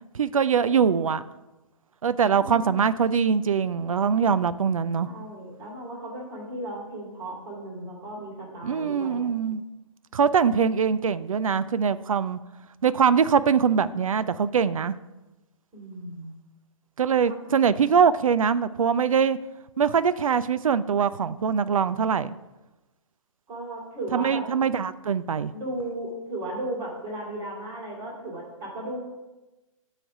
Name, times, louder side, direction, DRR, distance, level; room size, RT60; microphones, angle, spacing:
voice 1, 0.1-1.2 2.0-5.1 8.6-9.6 10.1-12.4 12.8-15.0 17.0-19.4 19.8-22.3 24.1-25.5, right 6 dB, 80° right, 14 dB, 0.4 m, -23 dB
voice 2, 2.3-2.8 5.0-9.3 15.7-16.3 23.5-24.4 25.5-29.0, right 1 dB, 25° right, -4 dB, 2.7 m, -35 dB
8.9 x 3.3 x 5.8 m, 1.0 s
figure-of-eight pair, 130°, 17 cm